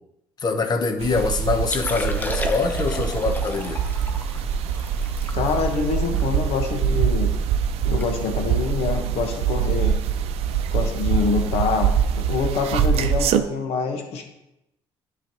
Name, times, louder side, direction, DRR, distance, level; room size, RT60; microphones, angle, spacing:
voice 1, 0.4-3.8, left 4 dB, 40° left, 6 dB, 1.0 m, -24 dB
sound 1, 1.0-13.4, right 7 dB, 70° right, 0.5 m, -24 dB
Liquid, 1.6-7.0 7.4-7.5 7.8-8.1 8.3-8.6 9.2-9.4 10.9-11.0, left 2 dB, 15° left, 0.8 m, -34 dB
voice 2, 5.3-7.3 7.8-10.0 10.7-14.2, left 5 dB, 75° left, 4 dB, 1.3 m, -26 dB
9.8 x 5.6 x 3.0 m, 0.88 s
supercardioid pair, 80°, 10 cm